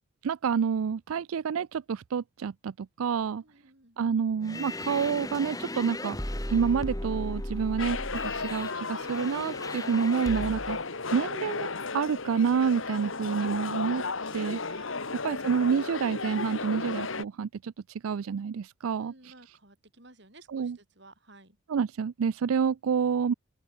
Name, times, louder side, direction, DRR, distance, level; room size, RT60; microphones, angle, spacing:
voice 1, 0.2-3.4 4.0-6.2 6.5-8.0 8.2-10.8 11.1-14.0 14.3-14.9 15.2-19.3 20.5-20.8 21.7-23.3, right 6 dB, 90° right, 0.4 m, -28 dB
voice 2, 3.4-4.0 19.0-21.6, right 2 dB, 55° right, 5.4 m, -56 dB
sound 1, 4.4-10.9, left 1 dB, 15° left, 2.5 m, -36 dB
sound 2, 7.8-17.2, left 4 dB, 75° left, 2.0 m, -34 dB
open air
head